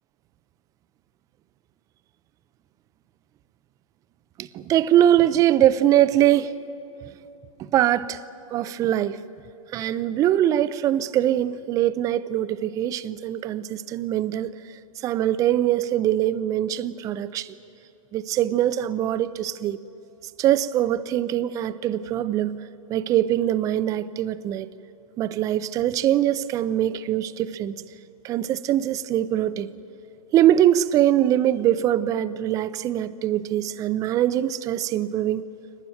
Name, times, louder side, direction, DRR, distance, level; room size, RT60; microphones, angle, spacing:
voice 1, 4.4-6.6 7.6-8.2 8.5-9.2 9.7-14.6 15.0-17.6 18.1-19.8 20.4-22.6 22.9-24.7 25.2-27.8 28.2-29.7 30.3-35.4, right 12 dB, 20° right, 0.5 m, -22 dB
22.5 x 19.0 x 9.1 m
hypercardioid pair, 130°, 19 cm